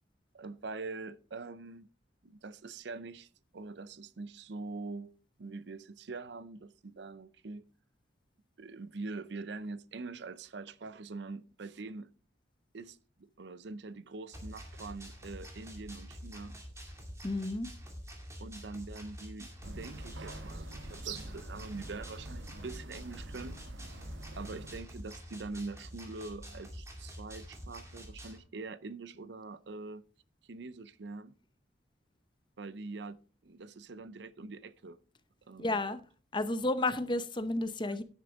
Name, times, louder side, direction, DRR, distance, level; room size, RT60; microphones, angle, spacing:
voice 1, 0.3-1.9 2.2-3.3 3.5-7.6 8.6-12.1 12.7-16.6 18.4-23.6 24.4-30.1 30.5-31.3 32.6-35.0 35.5-35.8, right 3 dB, 70° right, 0.6 m, -44 dB
sound 1, 14.3-28.4, equal, 15° right, 2.3 m, -47 dB
voice 2, 17.2-17.7 35.6-36.0 36.3-38.0, left 2 dB, 25° left, 0.8 m, -31 dB
sound 2, 19.6-24.8, right 2 dB, 85° right, 1.4 m, -45 dB
10.0 x 9.8 x 3.6 m
head